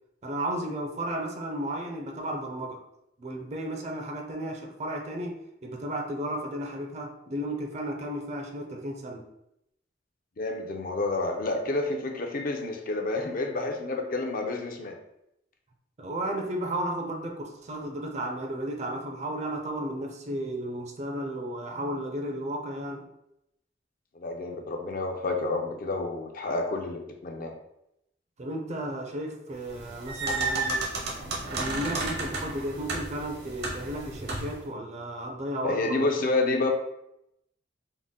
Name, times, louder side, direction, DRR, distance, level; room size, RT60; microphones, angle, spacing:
voice 1, 0.2-2.8 3.2-9.2 16.0-23.1 28.4-30.9 31.5-36.1, right 1 dB, 40° right, 2 dB, 0.5 m, -34 dB
voice 2, 10.4-15.0 24.2-27.5 35.6-36.7, left 2 dB, 50° left, 3 dB, 0.5 m, -29 dB
sound 1, 29.7-34.6, right 3 dB, 60° right, 0.8 m, -32 dB
3.8 x 2.1 x 3.7 m, 0.81 s
head